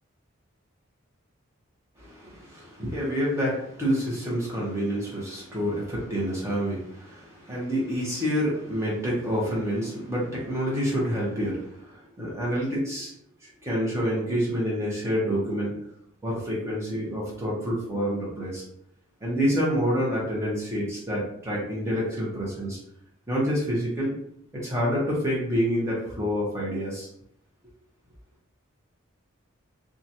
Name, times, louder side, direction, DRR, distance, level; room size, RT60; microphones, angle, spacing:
voice 1, 2.0-13.1 13.4-15.7 16.2-18.6 19.2-22.8 23.3-24.1 24.5-27.1, equal, 15° right, -5 dB, 0.8 m, -28 dB
2.8 x 2.3 x 2.7 m, 0.74 s
head